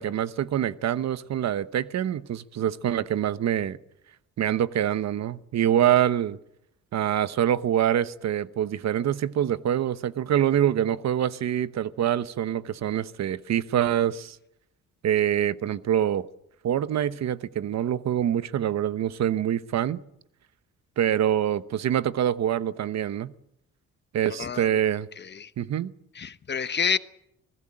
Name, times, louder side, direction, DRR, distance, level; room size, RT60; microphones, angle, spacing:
voice 1, 0.0-3.8 4.4-6.4 6.9-14.4 15.0-16.3 16.6-20.0 21.0-23.3 24.1-25.1 25.6-25.9, right 10 dB, 60° right, 1.0 m, -25 dB
voice 2, 24.4-24.7 25.2-25.5 26.1-27.0, left 6 dB, 35° left, 1.0 m, -28 dB
25.0 x 16.5 x 8.8 m
cardioid pair, 90°, 30 cm